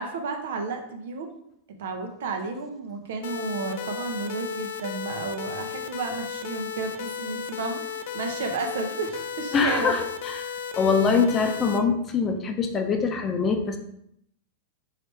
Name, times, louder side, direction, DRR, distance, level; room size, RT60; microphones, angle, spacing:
voice 1, 0.0-1.3 1.8-10.0, right 4 dB, 75° right, 5 dB, 0.8 m, -32 dB
sound 1, 3.2-11.8, left 7 dB, 70° left, 0.4 m, -34 dB
voice 2, 9.5-10.0 10.3-10.4 10.8-13.8, left 5 dB, 25° left, 5 dB, 0.7 m, -23 dB
4.8 x 3.2 x 3.2 m, 0.73 s
hypercardioid pair, 125°, 0 cm